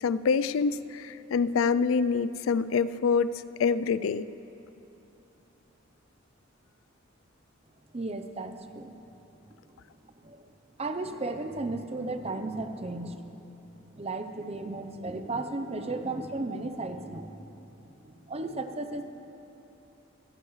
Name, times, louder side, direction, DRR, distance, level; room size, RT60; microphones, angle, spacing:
voice 1, 0.0-3.3 3.6-4.3, left 5 dB, 85° left, 16 dB, 0.4 m, -26 dB
voice 2, 7.9-8.9 9.6-9.7 10.2-10.5 10.8-13.4 14.0-17.6 18.0-19.1, right 2 dB, 30° right, 8 dB, 0.7 m, -35 dB
21.0 x 14.5 x 3.2 m, 2.9 s
head